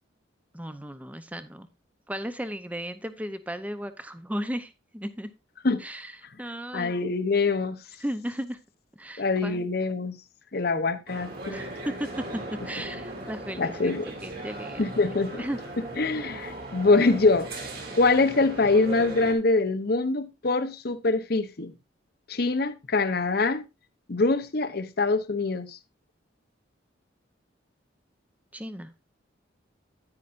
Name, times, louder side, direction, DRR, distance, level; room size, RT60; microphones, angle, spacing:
voice 1, 0.5-1.7 2.1-5.3 5.8-6.1 6.4-7.0 8.0-8.6 9.0-9.7 11.5-13.9 14.2-14.9 15.4-15.6 28.5-28.9, equal, 10° right, 0.7 m, -35 dB
voice 2, 6.7-7.8 9.2-10.1 10.5-11.6 13.6-14.1 14.8-15.4 16.0-17.5 17.9-21.7 22.3-23.7 24.1-25.8, left 3 dB, 50° left, 0.8 m, -24 dB
sound 1, 11.1-19.3, right 2 dB, 50° right, 2.9 m, -38 dB
9.9 x 9.7 x 2.5 m
head